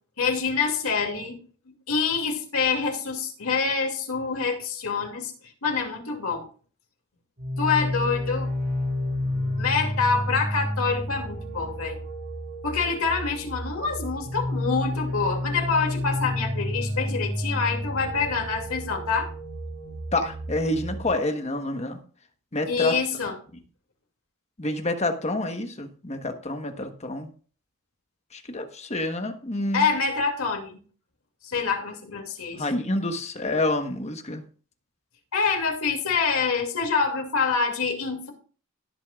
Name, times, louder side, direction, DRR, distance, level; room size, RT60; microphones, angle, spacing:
voice 1, 0.2-1.4 1.7-5.3 5.6-6.4 7.6-8.5 9.6-12.0 12.6-19.3 22.7-23.4 29.7-30.8 31.4-32.6 35.3-38.3, left 5 dB, 85° left, 2 dB, 2.5 m, -26 dB
sound 1, 7.4-21.1, left 1 dB, 50° right, 4.8 m, -30 dB
voice 2, 20.1-22.0 22.5-22.9 24.6-27.3 28.3-29.9 32.5-34.4, left 2 dB, 30° left, 6 dB, 1.2 m, -28 dB
17.5 x 8.3 x 2.4 m, 0.40 s
head